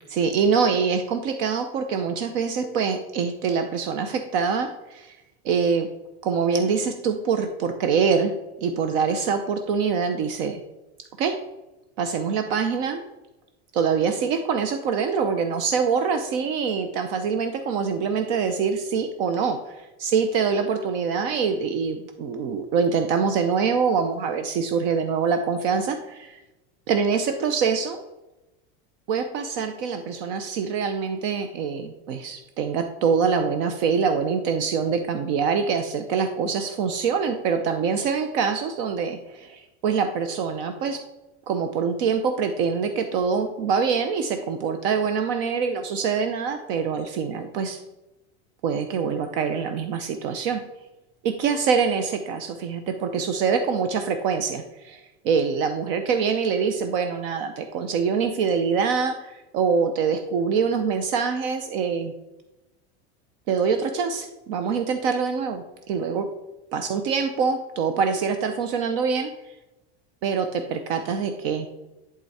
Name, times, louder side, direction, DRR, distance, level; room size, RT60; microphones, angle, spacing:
voice 1, 0.1-5.2 5.4-5.9 6.2-8.3 8.6-10.6 11.2-11.3 12.0-13.0 13.7-26.4 26.9-28.0 29.1-41.0 41.5-47.8 48.6-50.6 51.2-62.1 63.5-66.3 66.7-69.3 70.2-71.7, right 6 dB, 60° right, 6 dB, 0.7 m, -24 dB
11.5 x 3.8 x 4.2 m, 1.0 s
cardioid pair, 170°, 32 cm